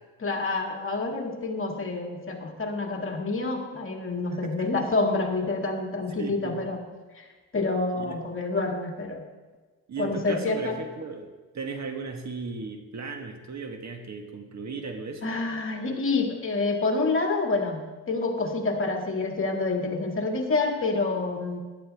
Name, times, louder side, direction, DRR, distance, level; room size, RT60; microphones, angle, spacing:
voice 1, 0.2-6.8 7.1-7.3 7.5-9.2 10.0-10.8 15.2-21.6, left 3 dB, 30° left, 2 dB, 2.2 m, -28 dB
voice 2, 4.3-4.7 6.2-6.6 7.9-8.2 9.9-15.3, right 4 dB, 45° right, 5 dB, 1.4 m, -36 dB
14.0 x 11.0 x 3.5 m, 1.3 s
cardioid pair, 85°, 40 cm